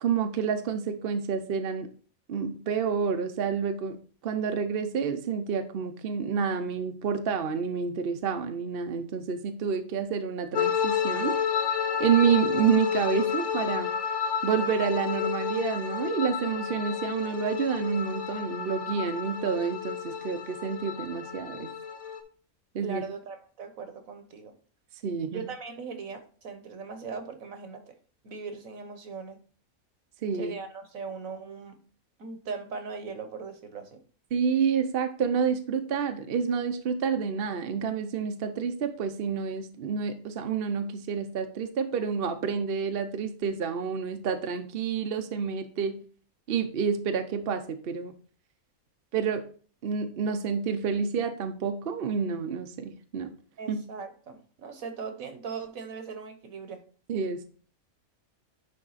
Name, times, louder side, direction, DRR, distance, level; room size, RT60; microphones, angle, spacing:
voice 1, 0.0-1.9 2.3-4.0 4.2-11.4 12.0-13.9 14.4-21.7 22.7-23.0 25.0-25.4 30.2-30.6 34.3-46.0 46.5-48.1 49.1-49.4 49.8-53.3 53.7-53.8 57.1-57.5, right 6 dB, 50° right, 7 dB, 0.8 m, -29 dB
sound 1, 10.5-22.2, left 7 dB, 60° left, 1.1 m, -31 dB
voice 2, 22.8-24.5 25.3-27.9 28.2-29.4 30.3-31.8 32.2-34.0 53.6-56.8, right 5 dB, 75° right, 8 dB, 1.5 m, -39 dB
10.0 x 3.7 x 4.0 m, 0.42 s
omnidirectional pair, 1.5 m